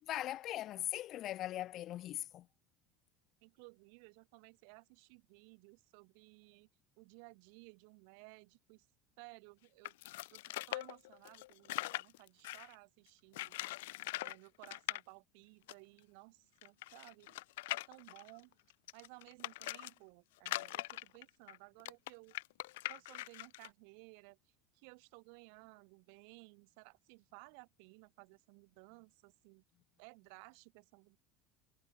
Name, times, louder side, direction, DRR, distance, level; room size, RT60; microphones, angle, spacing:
voice 1, 0.0-2.5, left 13 dB, 55° left, 0.4 m, -40 dB
voice 2, 3.4-6.7 7.0-8.9 9.2-9.9 10.3-13.6 14.2-17.4 17.7-18.6 18.9-22.4 22.9-29.6 30.0-31.2, right 40 dB or more, 75° right, 6.4 m, -58 dB
sound 1, 9.8-12.7 13.3-14.4 14.6-15.0 15.7-15.8 16.0-16.1 16.6-19.9 20.4-23.7, left 19 dB, 85° left, 0.9 m, -42 dB
supercardioid pair, 95°, 0 cm